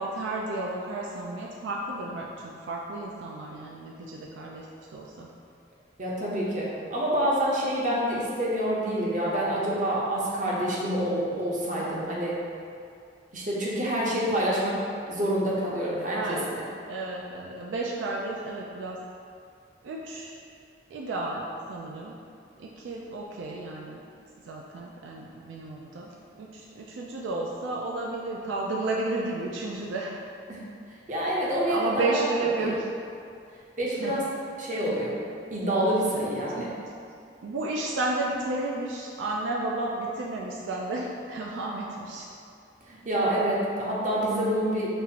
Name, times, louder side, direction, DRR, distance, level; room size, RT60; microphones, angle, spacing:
voice 1, 0.0-4.7 4.9-5.3 16.1-16.4 16.9-19.0 19.8-20.3 20.9-22.1 22.6-24.0 24.4-30.1 31.7-32.9 34.0-34.2 36.5-36.7 37.4-42.3, right 2 dB, 75° right, -2 dB, 0.3 m, -32 dB
voice 2, 6.0-12.4 13.3-16.6 30.5-30.6 31.1-32.7 33.8-34.2 34.6-35.2 35.5-36.7 42.9-44.9, right 1 dB, 40° right, -5 dB, 0.7 m, -27 dB
5.3 x 2.4 x 2.8 m, 2.4 s
head